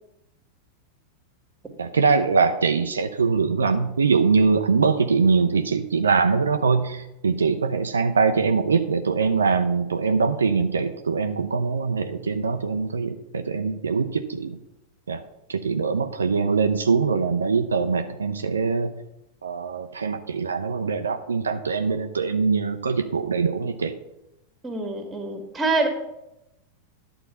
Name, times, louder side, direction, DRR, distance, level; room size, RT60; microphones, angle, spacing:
voice 1, 1.8-14.6 15.1-15.2 15.5-18.9 19.4-23.9, right 5 dB, 70° right, 7 dB, 0.5 m, -23 dB
voice 2, 24.6-25.9, right 3 dB, 15° right, 4 dB, 1.8 m, -25 dB
11.0 x 3.9 x 6.8 m, 0.90 s
figure-of-eight pair, 90°, 0 cm